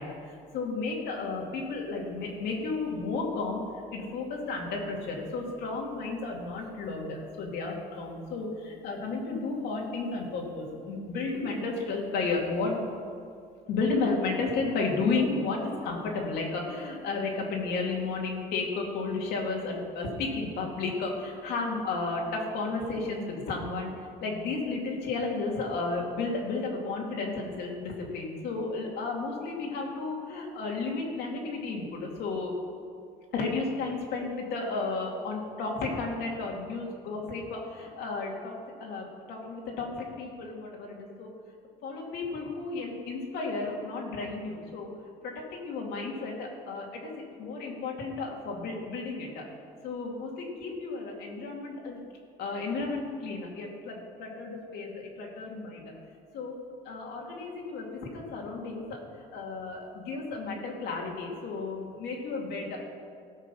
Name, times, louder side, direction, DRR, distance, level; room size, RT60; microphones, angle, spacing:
voice 1, 0.0-3.6 3.9-12.9 13.7-32.5 33.3-38.5 38.8-41.3 41.8-44.9 45.2-47.1 47.4-49.4 49.8-52.0 52.4-55.9 56.3-56.6 56.8-57.9 58.1-62.8, left 3 dB, 75° left, -1 dB, 2.5 m, -33 dB
16.5 x 6.6 x 5.5 m, 2.2 s
cardioid pair, 110°, 17 cm